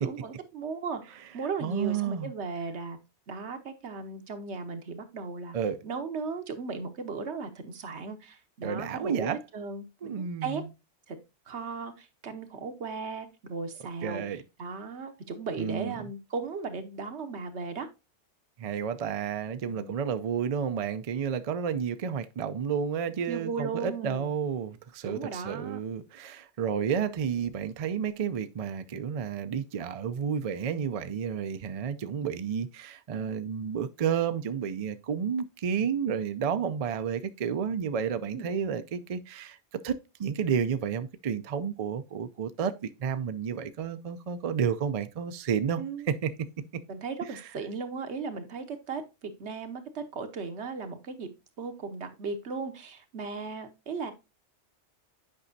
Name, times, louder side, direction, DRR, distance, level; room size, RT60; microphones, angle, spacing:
voice 1, 0.0-3.0 3.3-5.5 5.8-9.9 10.4-10.6 11.1-11.2 11.5-14.2 14.6-17.9 19.7-20.0 23.3-24.3 25.0-25.8 38.3-38.5 45.8-46.1 46.9-51.3 51.6-54.1, right 4 dB, 75° right, 1.2 m, -36 dB
voice 2, 1.6-2.3 5.5-5.8 8.6-9.4 10.0-10.7 14.0-14.4 15.6-15.9 18.6-39.6 39.8-45.8 46.1-46.3 47.3-47.4, right 7 dB, 50° right, 0.4 m, -31 dB
8.7 x 5.3 x 2.6 m
omnidirectional pair, 1.2 m